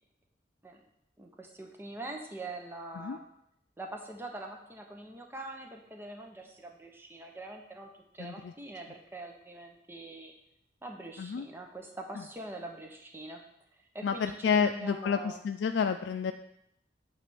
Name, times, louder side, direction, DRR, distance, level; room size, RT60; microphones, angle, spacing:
voice 1, 1.2-3.2 3.8-10.3 10.8-13.4 13.9-15.4, right 2 dB, 15° right, 2 dB, 0.9 m, -43 dB
voice 2, 8.2-8.5 11.2-11.4 14.0-16.3, left 6 dB, 85° left, 7 dB, 0.4 m, -30 dB
9.2 x 3.4 x 6.9 m, 0.76 s
head